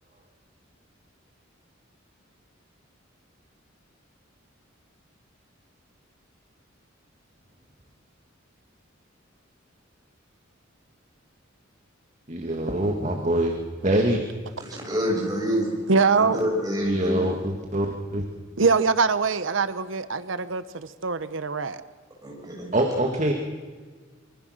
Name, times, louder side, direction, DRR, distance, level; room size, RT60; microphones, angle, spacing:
voice 1, 12.3-13.6 13.8-14.2 16.8-18.2 22.7-23.3, right 1 dB, 35° right, 3 dB, 1.9 m, -24 dB
voice 2, 14.6-15.7 16.2-17.2 22.2-22.7, equal, 20° right, -1 dB, 7.0 m, -27 dB
voice 3, 15.9-16.4 18.6-21.8, right 4 dB, 70° right, 13 dB, 0.9 m, -23 dB
25.5 x 24.0 x 6.5 m, 1.5 s
head